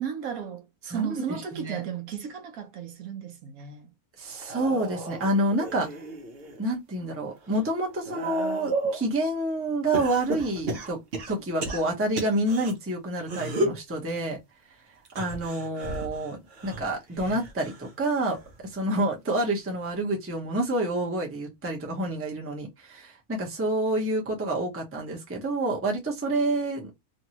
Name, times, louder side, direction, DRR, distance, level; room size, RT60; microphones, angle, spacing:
voice 1, 0.0-3.9, right 8 dB, 70° right, 1.0 m, -34 dB
voice 2, 0.9-1.8 4.2-5.9 6.6-11.0 11.3-14.4 15.2-26.9, right 1 dB, 15° right, 0.6 m, -28 dB
sound 1, 4.3-6.6 7.1-9.1 9.9-12.7 13.2-13.9 15.0-17.9 18.3-18.7 19.9-20.0, right 2 dB, 50° right, 0.8 m, -34 dB
2.9 x 2.7 x 2.8 m
omnidirectional pair, 1.6 m